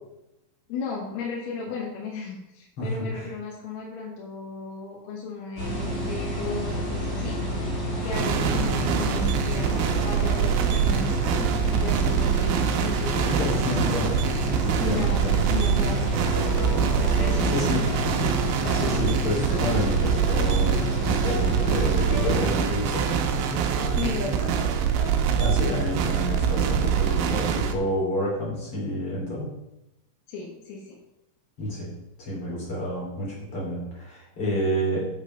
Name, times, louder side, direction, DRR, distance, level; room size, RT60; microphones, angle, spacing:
voice 1, 0.7-7.3 8.0-14.0 14.8-15.2 15.5-16.5 17.2-17.9 23.7-24.6 30.3-31.0, left 4 dB, 80° left, -5 dB, 4.2 m, -35 dB
voice 2, 2.8-3.3 8.0-8.1 13.2-14.2 14.9-15.4 17.4-18.2 18.7-23.0 25.4-29.5 31.6-31.9 32.2-35.1, equal, 30° left, -4 dB, 3.8 m, -29 dB
sound 1, 5.6-22.5, equal, 45° right, 0.8 m, -29 dB
sound 2, 8.1-27.7, right 7 dB, 80° right, 3.1 m, -24 dB
sound 3, 15.8-27.3, left 1 dB, 55° left, 3.3 m, -39 dB
9.6 x 6.7 x 5.2 m, 0.90 s
omnidirectional pair, 5.8 m